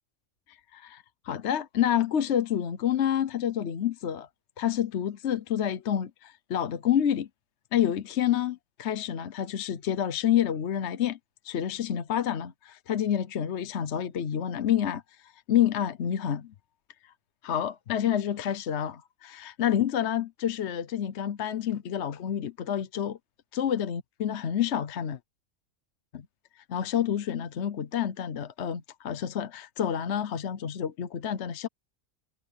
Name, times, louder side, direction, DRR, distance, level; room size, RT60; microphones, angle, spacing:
voice 1, 0.5-4.3 4.6-7.3 7.7-11.2 11.4-16.5 17.4-23.2 23.5-25.2 26.1-26.2 26.7-31.7, left 10 dB, 60° left, 1.1 m, -28 dB
omnidirectional pair, 1.4 m